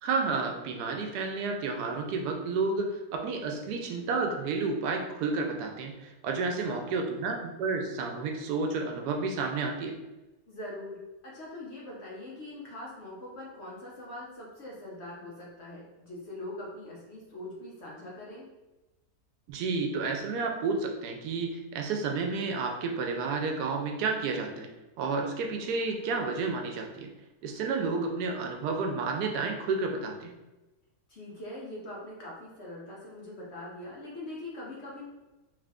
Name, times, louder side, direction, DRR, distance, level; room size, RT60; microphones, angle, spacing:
voice 1, 0.0-10.0 19.5-24.7 25.0-27.1 27.4-30.3, right 4 dB, 85° right, 3 dB, 1.1 m, -31 dB
voice 2, 6.4-6.9 10.5-18.5 31.1-35.1, left 1 dB, 55° left, -4 dB, 0.9 m, -42 dB
3.2 x 2.5 x 3.4 m, 1.1 s
omnidirectional pair, 1.7 m